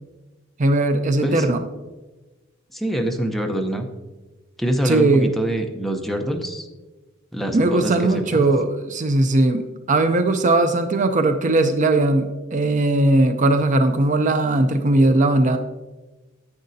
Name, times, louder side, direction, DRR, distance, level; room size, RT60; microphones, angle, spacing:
voice 1, 0.6-1.6 4.8-5.3 7.5-15.6, right 2 dB, 35° right, 8 dB, 0.5 m, -19 dB
voice 2, 1.2-1.5 2.7-3.9 4.6-6.7 7.3-8.4, right 1 dB, ahead, 3 dB, 0.7 m, -25 dB
10.5 x 8.5 x 2.7 m, 1.2 s
head